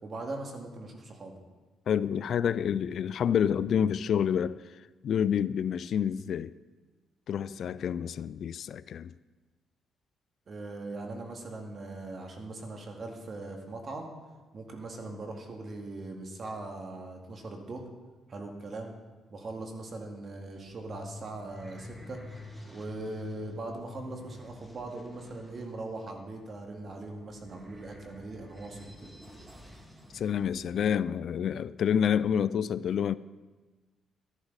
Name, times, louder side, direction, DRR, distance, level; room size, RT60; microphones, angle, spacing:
voice 1, 0.0-1.3 10.5-14.1 14.5-17.9 18.3-18.9 19.3-22.2 22.7-29.1, right 2 dB, 45° right, 2.2 m, -40 dB
voice 2, 1.9-4.6 5.0-6.5 7.3-9.1 30.1-33.1, left 8 dB, 65° left, 0.3 m, -28 dB
sound 1, 20.3-30.7, left 1 dB, 10° right, 2.4 m, -49 dB
13.5 x 11.5 x 4.1 m
cardioid pair, 90°, 0 cm